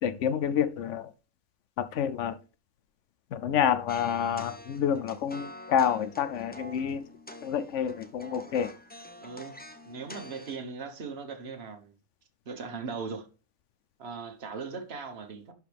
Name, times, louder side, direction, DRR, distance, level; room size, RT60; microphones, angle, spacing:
voice 1, 0.0-1.1 1.8-2.4 3.3-7.1 7.4-8.7, left 8 dB, 70° left, 0.7 m, -28 dB
sound 1, 3.9-10.6, left 1 dB, 10° left, 0.5 m, -46 dB
voice 2, 9.2-9.6 9.9-11.9 12.4-13.3 14.0-15.5, right 5 dB, 45° right, 1.4 m, -39 dB
11.5 x 4.8 x 3.4 m
omnidirectional pair, 1.7 m